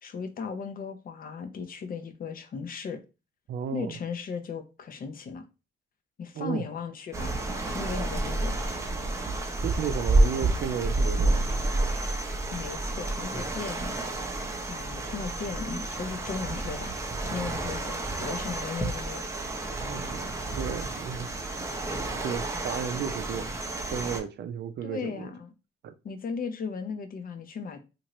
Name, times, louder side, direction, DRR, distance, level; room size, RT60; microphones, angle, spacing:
voice 1, 0.0-3.0 3.7-5.4 6.2-7.4 7.7-8.6 9.3-9.6 12.5-14.0 14.7-17.0 17.3-19.3 24.8-25.5 26.0-27.8, left 5 dB, 45° left, 0.6 m, -36 dB
voice 2, 3.5-4.0 6.3-6.6 9.6-11.5 19.7-21.3 22.2-23.5 23.9-25.3 25.8-25.9, right 7 dB, 60° right, 0.5 m, -34 dB
sound 1, 7.1-24.2, right 2 dB, 15° right, 0.6 m, -30 dB
2.8 x 2.5 x 3.0 m
cardioid pair, 90°, 20 cm